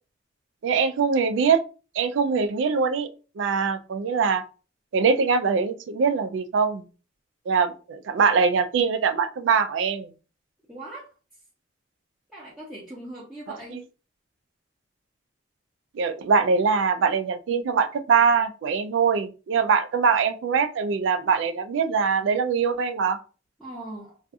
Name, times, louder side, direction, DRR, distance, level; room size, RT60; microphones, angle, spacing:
voice 1, 0.6-1.6 1.9-3.1 3.4-4.4 4.9-6.9 7.5-10.1 15.9-23.2, right 5 dB, 80° right, 11 dB, 0.3 m, -22 dB
voice 2, 10.7-11.1 12.3-13.9 23.6-24.2, right 1 dB, 5° right, -8 dB, 0.6 m, -40 dB
2.6 x 2.4 x 2.3 m, 0.35 s
head